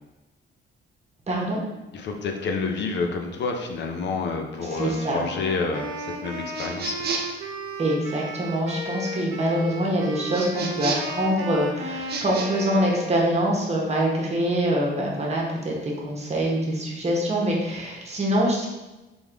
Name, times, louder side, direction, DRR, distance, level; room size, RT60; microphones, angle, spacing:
voice 1, 1.3-1.6 4.8-5.2 7.8-18.7, right 1 dB, 35° right, -2 dB, 1.1 m, -24 dB
voice 2, 1.9-7.0, left 4 dB, 60° left, 3 dB, 0.6 m, -29 dB
Wind instrument woodwind instrument, 4.6-13.3, right 1 dB, 85° right, 0.8 m, -35 dB
sound 1, 6.5-7.4 10.3-11.2 12.0-12.5, right 4 dB, 55° right, 0.7 m, -31 dB
3.5 x 3.5 x 3.4 m, 1.0 s
cardioid pair, 90°, 20 cm